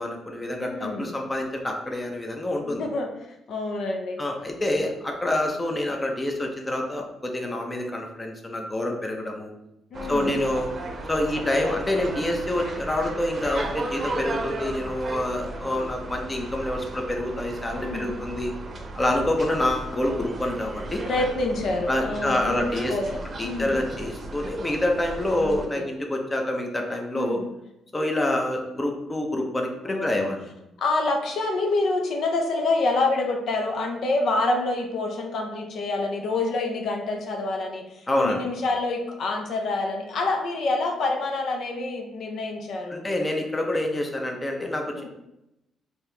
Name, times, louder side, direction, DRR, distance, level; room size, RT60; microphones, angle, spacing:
voice 1, 0.0-2.8 4.2-9.5 10.1-10.7 11.1-18.5 19.0-21.0 21.9-22.9 23.4-27.4 27.9-30.5 38.1-38.5 42.9-45.1, left 1 dB, 20° left, 2 dB, 0.7 m, -27 dB
voice 2, 0.6-1.1 2.6-3.1 3.5-4.2 9.9-10.3 11.5-11.8 17.7-18.1 21.0-23.9 25.4-25.9 27.1-27.4 29.9-30.3 30.8-43.0 44.9-45.1, left 2 dB, 65° left, 2 dB, 0.6 m, -27 dB
sound 1, 9.9-25.7, right 2 dB, 40° right, 0.7 m, -35 dB
4.3 x 2.8 x 3.3 m, 0.88 s
cardioid pair, 90°, 0 cm